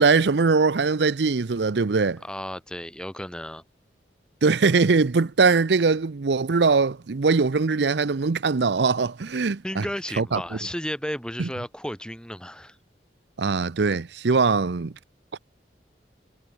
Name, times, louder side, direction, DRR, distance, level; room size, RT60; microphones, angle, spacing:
voice 1, 0.0-2.2 4.4-9.8 10.2-10.4 11.4-11.5 13.4-14.9 15.3-15.4, right 4 dB, 70° right, 0.6 m, -21 dB
voice 2, 2.2-3.6 9.6-12.8, equal, 5° left, 5.7 m, -33 dB
head